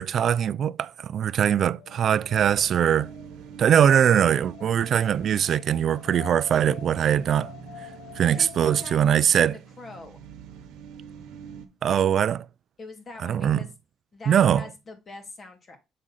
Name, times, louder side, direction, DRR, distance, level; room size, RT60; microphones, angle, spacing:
voice 1, 0.0-3.1 3.6-7.5 8.2-9.6 11.8-12.4 13.2-13.6 14.3-14.7, right 9 dB, 55° right, 0.3 m, -21 dB
Wind, 1.3-9.2, left 11 dB, 70° left, 0.6 m, -47 dB
sound 1, 1.8-11.7, right 7 dB, 85° right, 1.0 m, -45 dB
voice 2, 8.2-10.2 11.9-12.1 12.8-13.7 14.1-15.8, left 3 dB, 40° left, 2.2 m, -43 dB
7.5 x 3.7 x 4.0 m
cardioid pair, 95°, 0 cm